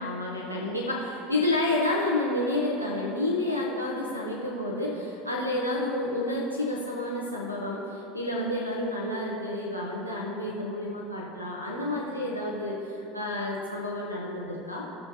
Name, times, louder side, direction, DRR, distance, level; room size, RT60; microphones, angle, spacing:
voice 1, 0.0-14.8, left 1 dB, 90° right, -3 dB, 1.1 m, -30 dB
17.5 x 6.8 x 3.1 m, 2.8 s
figure-of-eight pair, 70°, 0 cm